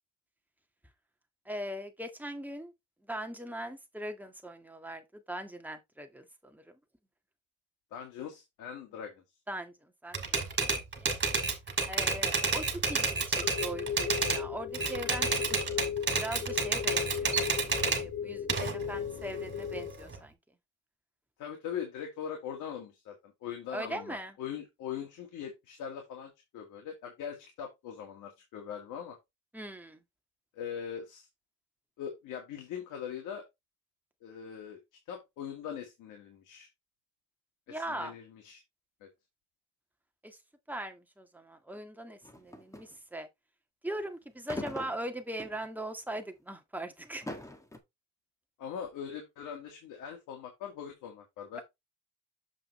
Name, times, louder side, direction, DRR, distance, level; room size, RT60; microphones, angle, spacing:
voice 1, 1.4-2.7 3.1-6.6 9.5-9.7 10.0-10.4 10.9-11.1 11.9-17.4 17.8-20.3 23.7-24.3 29.5-30.0 37.7-38.1 40.2-40.4 40.7-43.3 43.8-47.2, right 1 dB, 5° right, 1.6 m, -40 dB
voice 2, 7.9-9.2 21.4-29.2 30.5-31.3 32.0-33.4 34.2-34.8 35.1-36.7 37.7-38.6 39.0-39.1 48.6-51.6, left 8 dB, 90° left, 2.0 m, -41 dB
Typewriter, 10.1-14.4 14.7-18.0 18.5-20.2, right 4 dB, 35° right, 2.8 m, -30 dB
sound 1, 13.4-19.9, left 7 dB, 75° left, 1.9 m, -36 dB
sound 2, 42.2-43.0 44.5-45.7 46.2-46.3 47.0-47.8, left 1 dB, 10° left, 1.8 m, -41 dB
7.6 x 5.3 x 3.2 m
cardioid pair, 90°, 30 cm